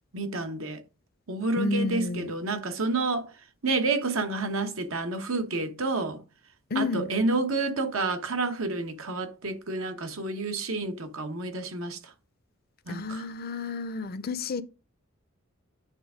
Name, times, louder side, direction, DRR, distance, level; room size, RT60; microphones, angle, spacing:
voice 1, 0.1-0.8 1.3-3.3 3.6-6.2 6.7-12.0 12.9-13.2, right 3 dB, 80° right, 1.1 m, -29 dB
voice 2, 1.6-2.3 6.7-7.1 12.9-14.6, left 3 dB, 45° left, 0.6 m, -30 dB
9.0 x 3.5 x 4.9 m
head